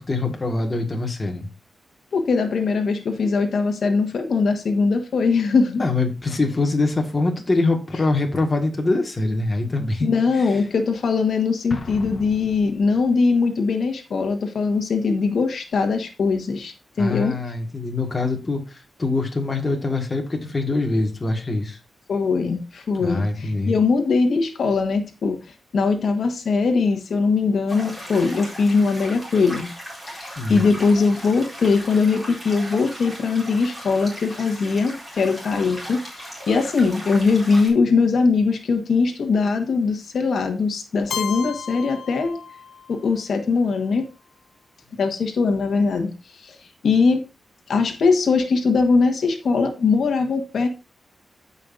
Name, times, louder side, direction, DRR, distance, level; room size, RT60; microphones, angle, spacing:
voice 1, 0.0-1.5 5.8-10.1 10.3-10.6 17.0-21.8 23.0-23.7 30.4-30.7, left 2 dB, 25° left, 2 dB, 1.6 m, -24 dB
voice 2, 2.1-5.8 10.0-17.4 22.1-29.7 30.0-42.4 42.9-44.1 44.9-46.6 46.8-47.2 47.7-50.7, left 4 dB, 65° left, 4 dB, 1.3 m, -21 dB
Explosion, 11.7-13.3, left 2 dB, 40° left, 1.1 m, -37 dB
sound 1, 27.7-37.7, equal, 10° right, 4.1 m, -37 dB
Keyboard (musical), 41.1-43.0, left 7 dB, 80° left, 0.4 m, -33 dB
15.5 x 5.6 x 2.6 m, 0.30 s
wide cardioid pair, 180°, 0 cm